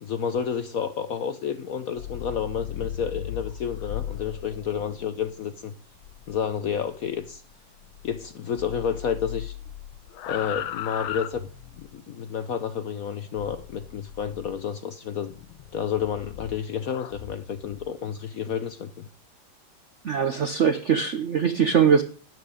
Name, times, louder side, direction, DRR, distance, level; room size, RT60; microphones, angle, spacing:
voice 1, 0.0-5.7 6.3-7.4 8.0-9.5 10.3-11.5 11.8-15.3 15.7-19.1, left 7 dB, 65° left, 0.9 m, -30 dB
sound 1, 1.8-8.3 8.6-12.0 13.4-14.6 15.3-17.9, left 11 dB, 90° left, 1.6 m, -38 dB
voice 2, 20.0-22.0, right 7 dB, 65° right, 0.7 m, -21 dB
12.0 x 9.4 x 5.0 m
omnidirectional pair, 2.2 m